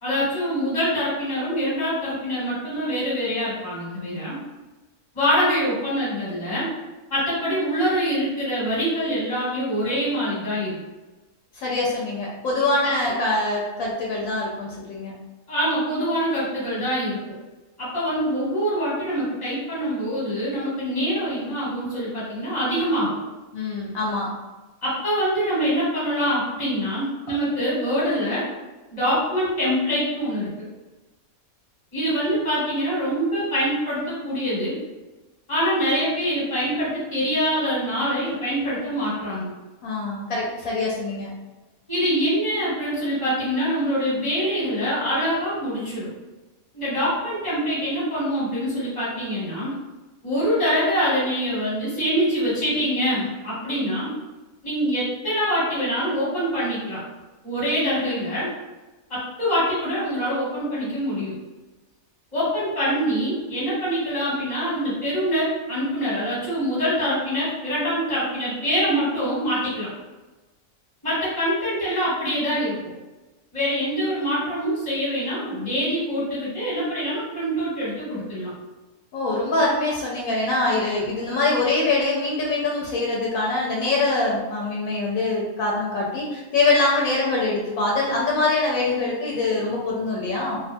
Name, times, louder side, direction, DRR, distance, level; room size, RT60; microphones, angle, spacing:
voice 1, 0.0-4.4 5.1-6.7 7.1-10.7 15.5-17.3 17.8-23.1 24.8-28.4 28.9-30.5 31.9-34.8 35.5-39.5 41.9-46.1 46.7-49.7 50.2-54.1 54.6-57.0 57.4-58.5 59.1-61.3 62.3-69.9 71.0-72.8 73.5-78.5, equal, 25° left, -8 dB, 1.0 m, -24 dB
voice 2, 11.5-15.1 23.5-24.3 39.8-41.3 79.1-90.6, left 2 dB, 75° left, -4 dB, 1.0 m, -24 dB
2.4 x 2.2 x 2.6 m, 1.1 s
omnidirectional pair, 1.5 m